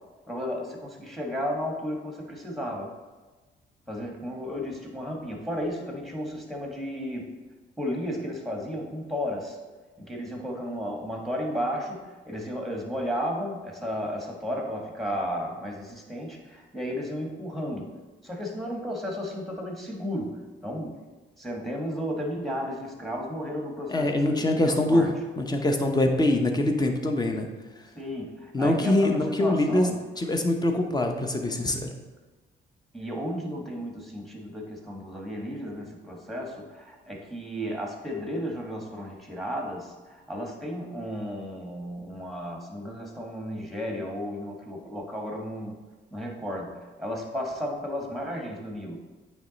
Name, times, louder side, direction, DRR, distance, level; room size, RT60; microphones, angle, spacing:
voice 1, 0.3-2.9 3.9-7.3 7.8-9.6 10.0-18.0 18.2-21.0 21.4-25.1 27.9-30.0 32.9-45.8 46.1-49.0, equal, ahead, 0 dB, 1.4 m, -33 dB
voice 2, 23.9-25.1 25.4-27.5 28.5-29.9 30.2-31.9, left 1 dB, 20° left, 4 dB, 0.8 m, -24 dB
8.7 x 3.2 x 4.0 m, 1.3 s
cardioid pair, 90°, 20 cm